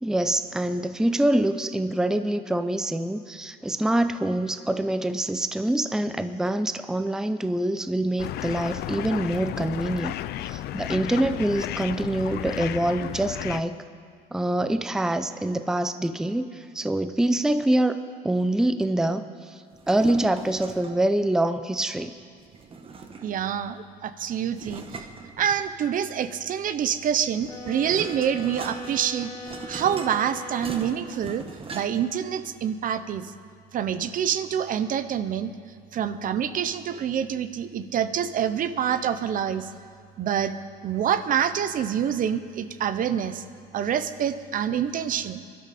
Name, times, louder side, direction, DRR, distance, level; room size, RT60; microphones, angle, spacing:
voice 1, 0.0-10.2 10.5-13.7 14.3-18.0 18.2-22.1, right 1 dB, 5° right, 10 dB, 0.5 m, -25 dB
sound 1, 8.2-13.6, left 13 dB, 75° left, 0.5 m, -33 dB
sound 2, 19.7-21.1 22.5-23.5 24.5-25.9 27.1-32.2, right 4 dB, 35° right, 1.2 m, -40 dB
voice 2, 23.2-24.8 25.4-29.3 29.7-31.4 31.7-33.2 33.7-35.5 35.9-39.7 40.2-40.6 40.8-43.4 43.7-45.4, right 9 dB, 55° right, 12 dB, 0.8 m, -26 dB
sound 3, 27.5-31.4, left 2 dB, 20° left, 2.3 m, -40 dB
23.0 x 12.0 x 4.2 m, 2.1 s
cardioid pair, 110°, 17 cm